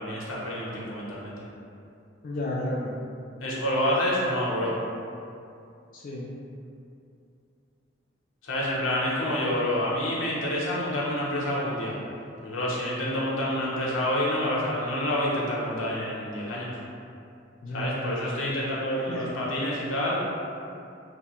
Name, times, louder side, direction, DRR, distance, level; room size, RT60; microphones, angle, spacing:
voice 1, 0.0-1.4 3.4-4.8 8.4-12.0 12.4-16.7 17.7-20.2, left 1 dB, 90° left, -5 dB, 0.7 m, -28 dB
voice 2, 2.2-2.9 5.9-6.3 17.6-18.3 19.1-19.3, left 1 dB, 45° left, -5 dB, 0.3 m, -32 dB
2.7 x 2.2 x 2.9 m, 2.5 s
head